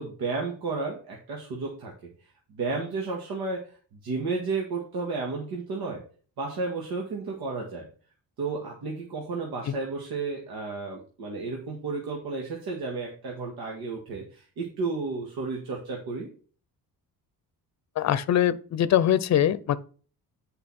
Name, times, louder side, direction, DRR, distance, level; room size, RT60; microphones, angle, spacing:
voice 1, 0.0-2.1 2.5-3.8 4.0-6.0 6.4-7.9 8.4-16.3, right 3 dB, 80° right, 2.0 m, -32 dB
voice 2, 18.0-19.8, left 10 dB, 50° left, 0.6 m, -22 dB
8.5 x 5.4 x 4.3 m
cardioid pair, 150°, 36 cm